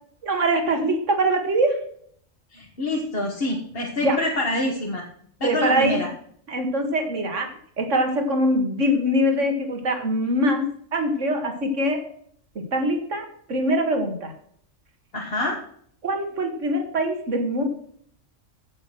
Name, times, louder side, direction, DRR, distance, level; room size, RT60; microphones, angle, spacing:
voice 1, 0.2-1.8 4.0-4.2 5.4-6.0 6.5-7.5 7.8-10.6 10.9-12.0 12.6-14.3 16.0-17.7, right 1 dB, 70° right, 5 dB, 2.2 m, -23 dB
voice 2, 2.5-5.0 5.4-6.1 15.1-15.6, left 1 dB, 50° left, -2 dB, 1.9 m, -26 dB
8.7 x 8.2 x 6.0 m, 0.63 s
omnidirectional pair, 1.3 m